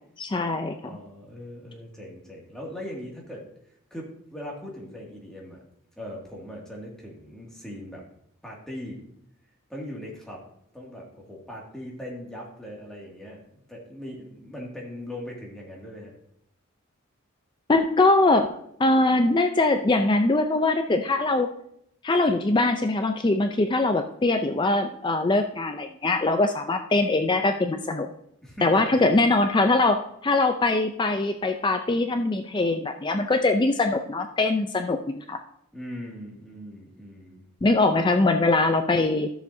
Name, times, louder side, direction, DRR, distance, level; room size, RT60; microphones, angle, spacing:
voice 1, 0.2-0.9 17.7-18.5 18.8-21.5 22.0-28.1 28.6-35.4 37.6-39.3, left 2 dB, 20° left, 6 dB, 0.4 m, -22 dB
voice 2, 0.8-3.5 3.9-5.6 6.0-8.0 8.4-9.0 9.7-10.4 10.7-13.4 13.7-16.1 28.4-29.2 35.7-37.4, left 1 dB, 5° left, -3 dB, 2.1 m, -40 dB
13.0 x 6.9 x 2.7 m, 0.74 s
head